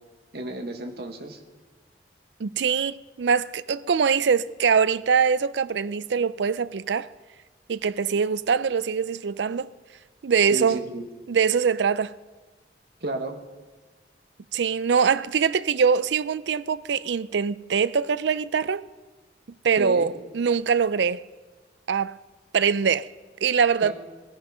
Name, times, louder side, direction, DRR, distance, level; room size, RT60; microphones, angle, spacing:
voice 1, 0.3-1.4 10.5-11.1 13.0-13.4 19.8-20.1 23.8-23.9, right 1 dB, 65° right, 1.5 m, -32 dB
voice 2, 2.4-7.1 7.7-9.7 10.2-10.8 11.3-12.1 14.5-18.8 19.6-21.2 21.9-22.2 22.5-23.1 23.4-23.9, right 6 dB, 85° right, 0.4 m, -23 dB
17.5 x 13.5 x 5.5 m
head